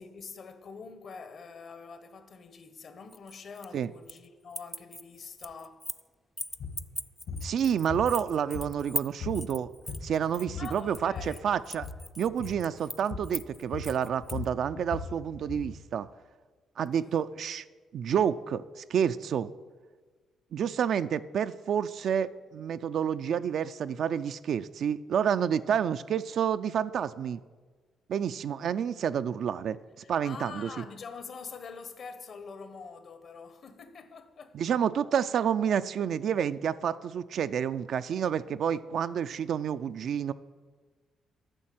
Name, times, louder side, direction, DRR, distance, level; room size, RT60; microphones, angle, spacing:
voice 1, 0.0-5.9 10.6-11.5 17.0-17.2 30.0-34.6, left 5 dB, 55° left, 1.1 m, -45 dB
sound 1, 3.1-4.3 4.5-6.1 6.4-14.5, left 1 dB, 5° left, 0.4 m, -40 dB
sound 2, 6.5-6.8 7.3-7.5 7.9-8.9 9.2-9.4 9.7-10.2 10.5-11.4 11.7-12.0 12.4-12.6 13.1-13.4 13.7-15.7, left 5 dB, 70° left, 2.3 m, -38 dB
voice 2, 7.4-9.7 10.0-11.9 12.2-16.1 16.8-17.6 17.9-19.5 20.5-27.4 28.1-29.8 30.1-30.8 34.5-40.3, right 8 dB, 65° right, 0.4 m, -29 dB
9.8 x 6.4 x 7.7 m
cardioid pair, 90°, 0 cm